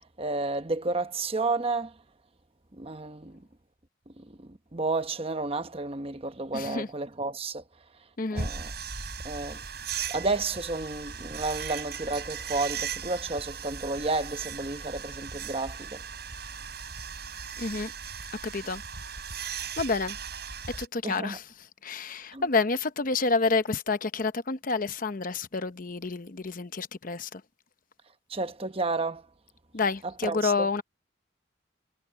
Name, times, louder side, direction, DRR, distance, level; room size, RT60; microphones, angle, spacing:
voice 1, 0.2-1.9 2.8-3.4 4.2-7.6 8.3-8.7 9.2-9.6 10.1-16.0 21.0-21.4 22.3-22.5 28.3-29.2 30.2-30.7, right 3 dB, 30° right, 1.0 m, -31 dB
voice 2, 6.5-6.9 8.2-8.5 17.6-17.9 18.4-18.8 19.8-20.2 20.7-21.5 21.8-27.4 29.7-30.8, left 4 dB, 45° left, 0.9 m, -29 dB
sound 1, 8.4-20.9, right 6 dB, 55° right, 7.5 m, -37 dB
head